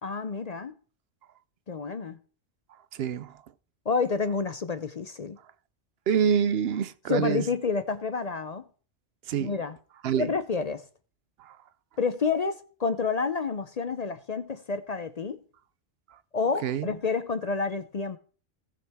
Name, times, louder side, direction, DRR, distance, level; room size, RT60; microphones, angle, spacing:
voice 1, 0.0-0.7 1.7-2.2 3.9-5.4 7.1-8.6 9.4-9.8 10.2-10.8 12.0-15.4 16.3-18.2, left 5 dB, 45° left, 0.5 m, -29 dB
voice 2, 2.9-3.3 6.1-7.4 9.3-9.5 10.0-10.3 11.4-11.5 16.6-16.9, right 8 dB, 65° right, 0.8 m, -26 dB
18.0 x 6.1 x 3.5 m
omnidirectional pair, 1.2 m